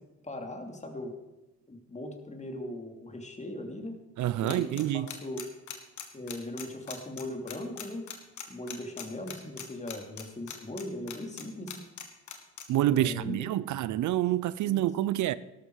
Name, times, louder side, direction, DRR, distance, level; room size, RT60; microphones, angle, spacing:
voice 1, 0.2-1.1 1.7-4.0 4.4-5.5 6.1-8.1 8.5-11.8 12.9-13.4 14.7-14.8, left 1 dB, 25° left, 2.8 m, -39 dB
voice 2, 4.2-5.1 12.7-15.3, right 13 dB, 75° right, 0.6 m, -27 dB
sound 1, 4.5-11.4 11.7-12.6, left 9 dB, 70° left, 2.2 m, -40 dB
13.0 x 12.5 x 4.8 m
cardioid pair, 90°, 30 cm